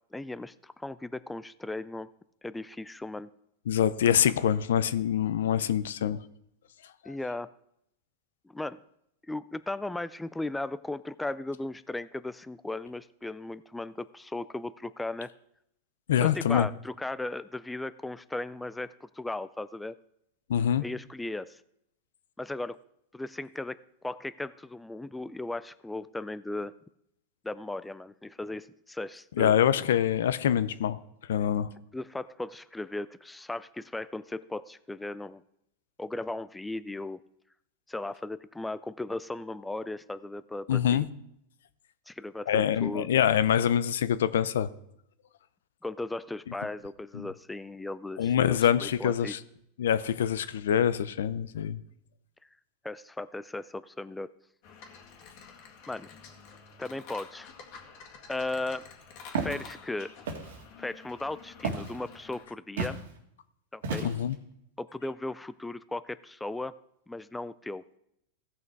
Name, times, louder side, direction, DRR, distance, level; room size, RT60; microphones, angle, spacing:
voice 1, 0.1-2.1 2.4-3.3 7.1-7.5 8.4-8.8 9.3-15.3 16.2-20.0 20.8-21.6 22.4-22.8 23.1-23.8 24.0-26.7 27.4-29.6 31.9-35.4 36.0-37.2 37.9-41.1 42.1-43.1 45.8-49.4 52.8-54.3 55.9-56.1 56.8-57.5 58.3-58.9 59.4-60.1 60.8-63.0 63.7-64.1 64.8-66.7 67.1-67.8, left 2 dB, 5° left, 15 dB, 0.3 m, -36 dB
voice 2, 3.7-6.2 16.1-16.7 20.5-20.8 29.4-31.0 31.3-31.7 40.7-41.1 42.5-44.7 47.1-47.3 48.2-49.4 49.8-51.8 64.0-64.4, left 9 dB, 85° left, 15 dB, 0.6 m, -25 dB
sound 1, 54.6-62.5, left 6 dB, 50° left, 2.0 m, -50 dB
Walk footsteps, 59.3-59.6 60.2-60.6 61.6-62.0 62.8-63.0 63.8-64.3, right 4 dB, 85° right, 1.9 m, -32 dB
16.0 x 5.8 x 4.6 m, 0.76 s
supercardioid pair, 135°, 0 cm